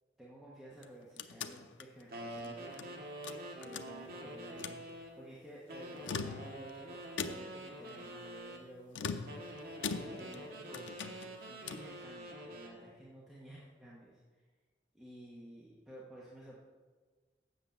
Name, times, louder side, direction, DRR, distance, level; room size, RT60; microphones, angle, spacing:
voice 1, 0.2-3.0 3.6-4.8 5.1-9.2 10.0-10.9 11.5-14.2 14.9-16.6, right 1 dB, ahead, -7 dB, 1.3 m, -53 dB
sound 1, 0.7-2.9 3.2-4.2 4.5-4.8 5.9-6.7 7.2-7.7 8.9-10.4 10.7-11.9, left 5 dB, 90° left, 0.6 m, -42 dB
sound 2, 2.1-5.2 5.7-8.6 9.3-12.8, right 1 dB, 55° right, 1.4 m, -46 dB
7.9 x 7.0 x 7.1 m, 1.4 s
head